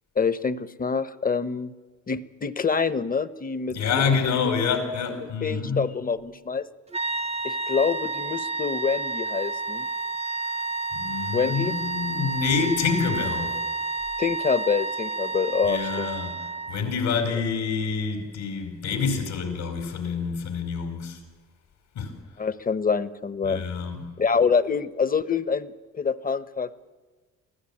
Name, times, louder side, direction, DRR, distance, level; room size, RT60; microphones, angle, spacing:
voice 1, 0.2-1.7 2.1-4.2 4.4-4.5 5.2-6.7 7.4-9.9 11.3-11.7 14.2-16.1 22.4-23.6 24.2-26.8, left 5 dB, 30° left, 1.0 m, -26 dB
voice 2, 3.7-5.8 10.9-13.6 15.6-16.4 16.7-21.2 21.9-22.1 23.4-24.0, left 5 dB, 85° left, 5.0 m, -27 dB
sound 1, 6.9-16.9, right 3 dB, 20° right, 0.7 m, -30 dB
23.0 x 15.0 x 8.7 m
cardioid pair, 90°, 30 cm